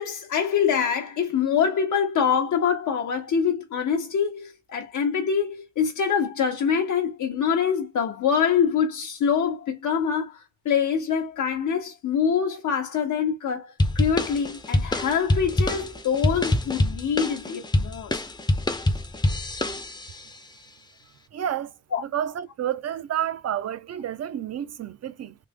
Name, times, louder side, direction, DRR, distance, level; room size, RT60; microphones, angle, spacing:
voice 1, 0.0-18.2 21.9-22.0, left 7 dB, 85° left, 0.7 m, -25 dB
sound 1, 13.8-20.2, left 1 dB, 15° left, 0.4 m, -25 dB
voice 2, 21.3-21.7 22.0-25.3, right 10 dB, 60° right, 0.5 m, -30 dB
3.4 x 2.0 x 3.3 m
wide cardioid pair, 125°, 29 cm